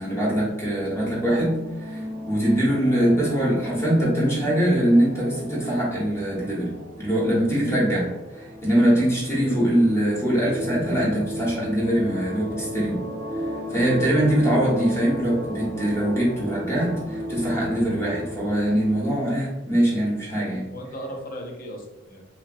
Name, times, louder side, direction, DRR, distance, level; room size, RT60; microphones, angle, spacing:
voice 1, 0.0-2.0 2.3-8.1 8.6-13.0 13.7-20.7, right 1 dB, 15° left, -5 dB, 0.8 m, -22 dB
sound 1, 0.8-19.2, equal, 60° right, 0.6 m, -35 dB
voice 2, 9.3-9.6 20.3-20.5 20.7-22.3, equal, 45° left, 1 dB, 0.5 m, -37 dB
3.0 x 2.2 x 2.5 m, 1.1 s
head